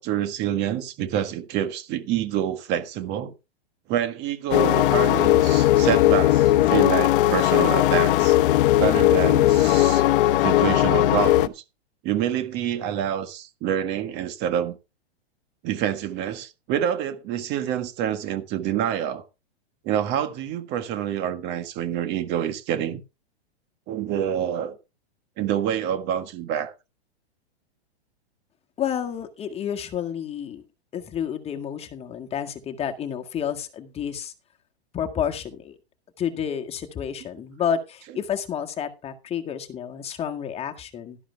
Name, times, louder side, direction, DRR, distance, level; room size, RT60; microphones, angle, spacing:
voice 1, 0.0-3.3 3.9-8.4 8.8-10.0 10.4-11.6 12.0-14.8 15.6-19.2 19.8-23.0 23.9-24.8 25.4-26.7, right 10 dB, 35° right, 1.6 m, -27 dB
sound 1, 4.5-11.5, left 14 dB, 55° left, 1.0 m, -18 dB
voice 2, 28.8-30.6 30.9-34.3 34.9-35.8 36.2-41.2, left 8 dB, 20° left, 1.8 m, -30 dB
12.5 x 11.5 x 3.4 m
hypercardioid pair, 140°, 32 cm